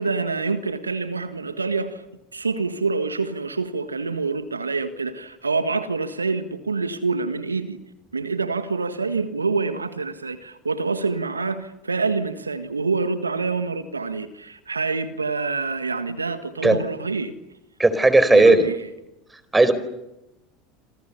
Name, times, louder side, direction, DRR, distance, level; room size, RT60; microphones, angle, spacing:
voice 1, 0.0-2.0 2.3-7.8 8.1-17.3 18.3-18.9, right 4 dB, 90° right, 11 dB, 1.6 m, -26 dB
voice 2, 17.8-18.7 19.5-19.7, right 2 dB, 10° right, 14 dB, 4.6 m, -15 dB
28.5 x 27.5 x 7.0 m, 0.91 s
figure-of-eight pair, 75°, 0 cm